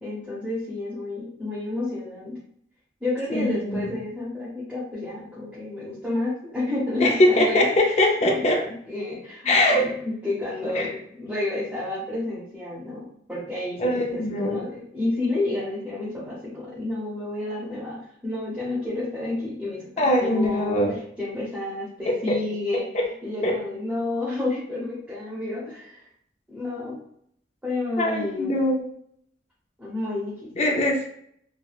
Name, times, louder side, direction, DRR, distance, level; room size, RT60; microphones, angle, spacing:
voice 1, 0.0-2.4 3.0-8.0 8.3-22.9 23.2-26.1 26.5-27.0 27.6-28.5 29.8-30.5, left 2 dB, 5° right, -10 dB, 0.8 m, -30 dB
voice 2, 3.3-3.8 7.0-8.7 9.5-9.9 10.7-10.9 13.8-14.6 20.0-20.9 22.1-22.4 22.9-23.0 23.4-23.6 28.0-28.9 30.6-31.0, left 1 dB, 35° left, 1 dB, 0.4 m, -22 dB
3.3 x 2.2 x 2.3 m, 0.67 s
head